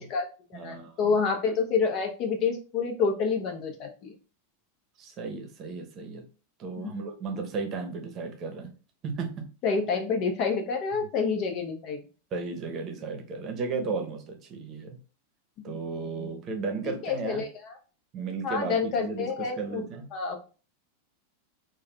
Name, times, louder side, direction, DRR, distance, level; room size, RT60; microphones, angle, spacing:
voice 1, 0.0-4.1 6.8-6.9 9.6-12.0 15.7-16.3 16.8-17.8 18.4-19.8 20.1-20.4, left 5 dB, 45° left, 3 dB, 0.7 m, -28 dB
voice 2, 0.5-1.2 5.0-6.2 6.6-8.7 9.0-9.5 11.0-11.1 12.3-15.0 15.6-17.4 18.1-20.1, right 4 dB, 40° right, 4 dB, 0.8 m, -34 dB
3.5 x 2.2 x 2.3 m, 0.36 s
hypercardioid pair, 100°, 0 cm